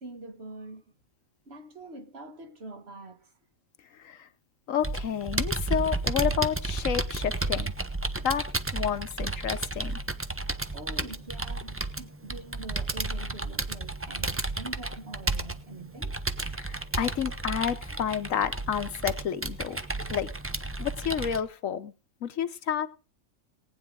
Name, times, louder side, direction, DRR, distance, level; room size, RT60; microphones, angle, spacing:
voice 1, 0.0-0.8 1.5-3.3 10.7-16.2, right 2 dB, 50° right, 1.6 m, -44 dB
voice 2, 4.7-7.7 8.2-8.4 8.7-10.0 16.5-19.8 20.1-20.3 20.8-21.9 22.2-22.9, left 9 dB, 70° left, 1.2 m, -30 dB
Computer keyboard, 4.8-21.4, right 2 dB, 15° right, 0.5 m, -32 dB
18.5 x 9.4 x 3.8 m
omnidirectional pair, 1.5 m